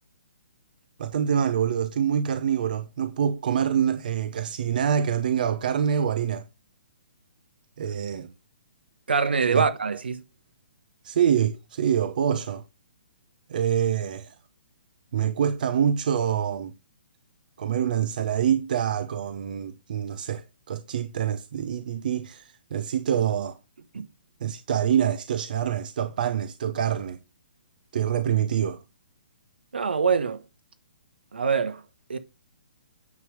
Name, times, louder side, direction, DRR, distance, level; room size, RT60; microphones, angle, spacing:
voice 1, 1.0-6.4 7.8-8.3 9.5-9.6 11.0-12.6 13.5-14.3 15.1-16.7 17.6-23.6 24.4-27.2 27.9-28.8, right 8 dB, 60° right, 0.8 m, -25 dB
voice 2, 9.1-10.2 23.9-24.1 29.7-30.4 31.3-31.8 32.1-32.2, right 5 dB, 85° right, 1.1 m, -24 dB
9.6 x 3.3 x 6.2 m
hypercardioid pair, 145°, 5 cm